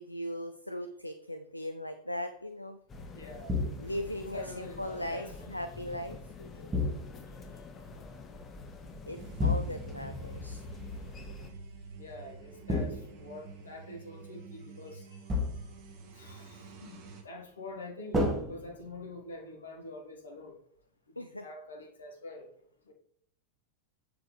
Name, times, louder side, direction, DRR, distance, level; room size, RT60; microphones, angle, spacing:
voice 1, 0.0-2.8 3.8-6.7 9.1-10.6 21.2-21.4, left 1 dB, 85° left, 8 dB, 0.5 m, -39 dB
sound 1, 2.9-11.5, left 4 dB, 25° left, 1.2 m, -47 dB
voice 2, 3.1-3.6 4.2-5.5 12.0-15.2 16.1-20.6 21.1-22.6 22.9-23.0, left 2 dB, 70° left, 2 dB, 1.8 m, -46 dB
sound 2, 3.5-4.1 6.7-7.4 9.4-10.1 12.7-13.6 15.3-15.9 18.1-19.2, left 2 dB, 15° right, 1.6 m, -32 dB
sound 3, 9.1-17.2, right 2 dB, 45° right, 1.5 m, -47 dB
7.7 x 6.9 x 3.3 m, 0.66 s
figure-of-eight pair, 90°, 0 cm